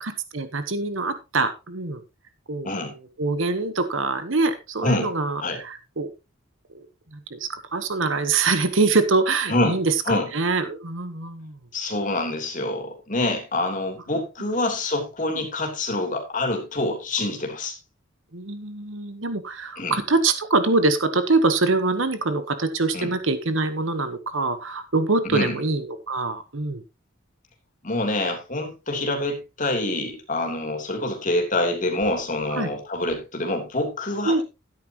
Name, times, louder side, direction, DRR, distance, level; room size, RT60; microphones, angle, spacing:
voice 1, 0.0-2.0 2.5-6.1 6.7-6.8 7.1-11.6 18.3-26.8 32.5-32.7 34.2-34.4, right 3 dB, 70° right, 10 dB, 1.2 m, -24 dB
voice 2, 11.7-17.7 19.8-20.0 22.9-23.1 25.2-25.6 27.8-34.4, left 2 dB, 40° left, 3 dB, 3.2 m, -26 dB
13.0 x 10.0 x 3.0 m, 0.27 s
head